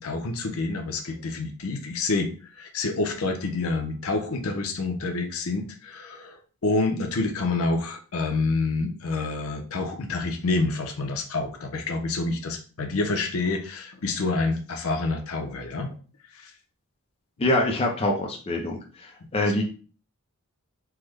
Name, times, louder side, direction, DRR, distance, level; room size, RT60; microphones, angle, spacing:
voice 1, 0.0-2.3 2.6-15.9 16.3-16.5, left 3 dB, 75° left, 4 dB, 0.6 m, -28 dB
voice 2, 17.4-19.6, left 1 dB, 25° left, 1 dB, 0.4 m, -25 dB
3.4 x 2.0 x 3.2 m, 0.38 s
head